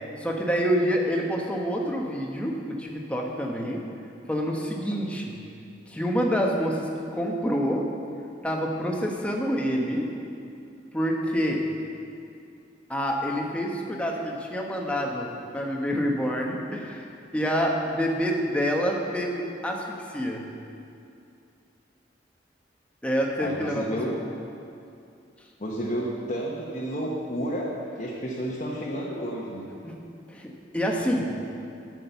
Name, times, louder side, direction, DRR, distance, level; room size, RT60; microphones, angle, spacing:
voice 1, 0.2-3.8 4.3-5.4 5.9-7.9 8.4-10.1 10.9-11.6 12.9-17.1 17.3-20.4 23.0-23.9 29.8-30.0 30.3-31.3, equal, 5° left, -1 dB, 1.1 m, -27 dB
voice 2, 23.4-24.2 25.6-29.7, equal, 45° left, -5 dB, 1.2 m, -31 dB
11.5 x 6.1 x 6.9 m, 2.6 s
head